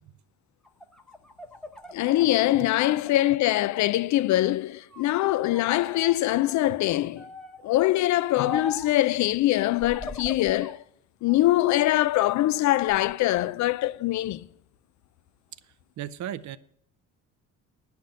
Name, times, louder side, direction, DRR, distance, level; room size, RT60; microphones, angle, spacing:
sound 1, 0.6-3.9 4.2-5.1 5.5-6.2 7.2-7.7 8.4-9.0 9.7-10.8 11.3-12.2 12.7-13.4, left 3 dB, ahead, 0.7 m, -41 dB
voice 1, 1.9-7.3 7.6-10.8 11.2-14.5, left 15 dB, 70° left, 0.4 m, -23 dB
voice 2, 16.0-16.6, right 11 dB, 70° right, 0.6 m, -35 dB
10.0 x 5.8 x 7.5 m
cardioid pair, 90°, 30 cm